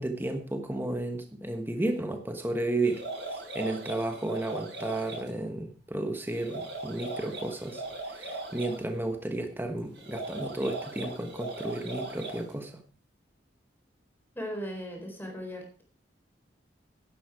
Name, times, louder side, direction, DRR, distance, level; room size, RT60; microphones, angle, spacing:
voice 1, 0.0-3.0 3.3-12.7, right 2 dB, 10° right, 5 dB, 1.2 m, -33 dB
sound 1, 2.8-5.3 6.3-8.8 9.9-12.5, right 2 dB, 65° right, 5.6 m, -39 dB
voice 2, 14.3-15.8, equal, 10° left, 1 dB, 4.2 m, -37 dB
11.0 x 11.0 x 4.8 m, 0.42 s
head